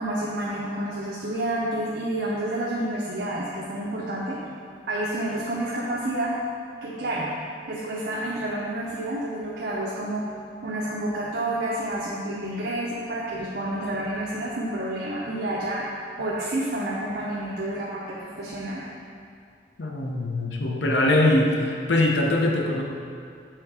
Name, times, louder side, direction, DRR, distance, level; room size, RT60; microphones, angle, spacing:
voice 1, 0.0-4.4 4.9-6.3 6.8-7.3 7.7-10.2 10.6-18.8, right 1 dB, 75° right, -6 dB, 0.8 m, -29 dB
voice 2, 19.8-22.8, left 1 dB, 85° left, 1 dB, 0.8 m, -22 dB
7.6 x 3.7 x 4.8 m, 2.3 s
head